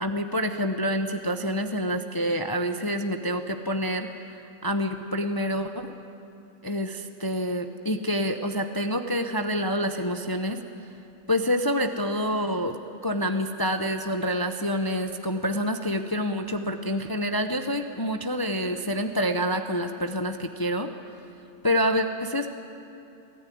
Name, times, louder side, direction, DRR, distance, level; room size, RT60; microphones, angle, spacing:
voice 1, 0.0-4.1 4.6-5.9 6.6-10.6 11.3-12.8 13.0-20.9 21.6-22.5, equal, 25° left, 6 dB, 0.6 m, -27 dB
24.0 x 15.5 x 9.3 m, 2.7 s
omnidirectional pair, 1.5 m